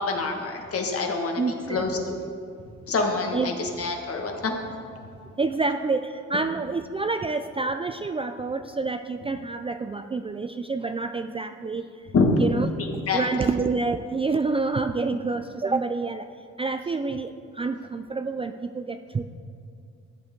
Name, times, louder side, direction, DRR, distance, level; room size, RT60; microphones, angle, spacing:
voice 1, 0.1-1.4 1.7-2.3 2.9-4.5 12.1-12.3 12.8-13.3, left 4 dB, 50° left, 2 dB, 1.7 m, -26 dB
voice 2, 1.4-2.1 3.3-3.5 5.4-11.8 12.4-12.7 13.1-16.3 16.6-19.2, right 3 dB, 20° right, 8 dB, 0.4 m, -28 dB
14.0 x 8.1 x 3.8 m, 2.3 s
cardioid pair, 90°, 30 cm